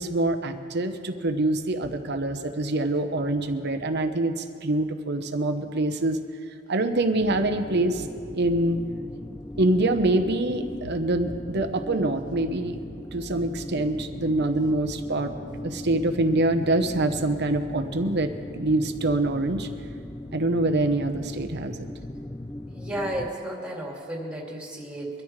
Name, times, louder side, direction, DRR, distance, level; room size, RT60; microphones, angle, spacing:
voice 1, 0.0-6.2 6.7-8.1 8.3-8.8 9.6-12.8 13.1-15.3 15.6-19.7 20.3-21.9, right 2 dB, 55° right, 7 dB, 1.0 m, -25 dB
sound 1, 7.2-23.3, left 1 dB, 15° left, 0.3 m, -38 dB
voice 2, 22.7-25.1, right 1 dB, 5° right, -3 dB, 2.6 m, -33 dB
23.5 x 13.0 x 3.3 m, 2.5 s
head